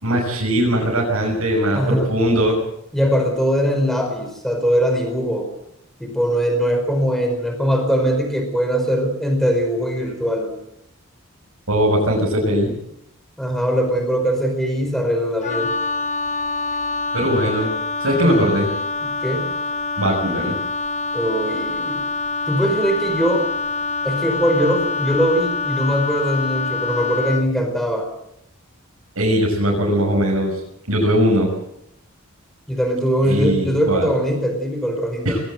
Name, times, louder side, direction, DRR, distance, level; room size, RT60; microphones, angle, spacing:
voice 1, 0.0-2.6 11.7-12.8 17.1-17.7 18.0-18.7 20.0-20.6 29.1-30.6 30.9-31.5 33.2-34.1 35.2-35.4, equal, 80° right, -3 dB, 6.4 m, -19 dB
voice 2, 1.7-2.1 2.9-5.5 6.0-10.5 13.4-15.7 18.2-18.4 19.0-19.5 21.1-22.0 22.5-23.5 24.0-28.1 32.7-35.4, equal, ahead, 4 dB, 4.8 m, -21 dB
Wind instrument woodwind instrument, 15.4-27.5, left 4 dB, 30° left, 1.0 m, -25 dB
21.5 x 18.0 x 7.9 m, 0.79 s
head